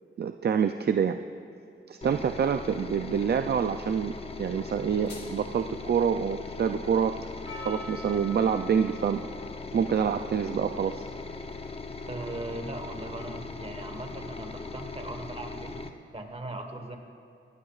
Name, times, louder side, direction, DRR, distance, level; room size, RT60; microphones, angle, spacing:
voice 1, 0.2-1.2 1.9-7.1 7.6-9.2 9.7-11.0, right 7 dB, 55° right, 7 dB, 0.4 m, -27 dB
sound 1, 2.0-15.9, left 3 dB, 30° left, 0.7 m, -40 dB
sound 2, 4.6-5.6, left 2 dB, 60° left, 3.2 m, -50 dB
Percussion, 7.5-12.4, left 2 dB, 75° left, 2.1 m, -46 dB
voice 2, 12.1-17.0, right 1 dB, 30° right, 4 dB, 1.3 m, -39 dB
22.0 x 11.5 x 2.4 m, 2.7 s
wide cardioid pair, 105°, 21 cm